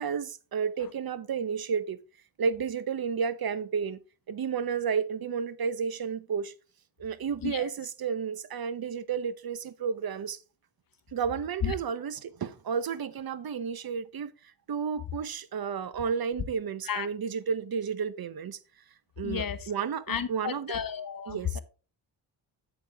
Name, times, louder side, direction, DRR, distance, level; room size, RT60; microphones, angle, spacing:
voice 1, 0.0-2.0 2.4-4.0 4.3-6.5 7.0-10.4 11.1-14.3 14.7-18.6 19.2-20.8 21.3-21.6, right 6 dB, 50° right, 0.8 m, -32 dB
voice 2, 19.2-19.6 20.1-21.6, left 7 dB, 45° left, 1.0 m, -32 dB
8.5 x 7.3 x 3.4 m
cardioid pair, 85°, 46 cm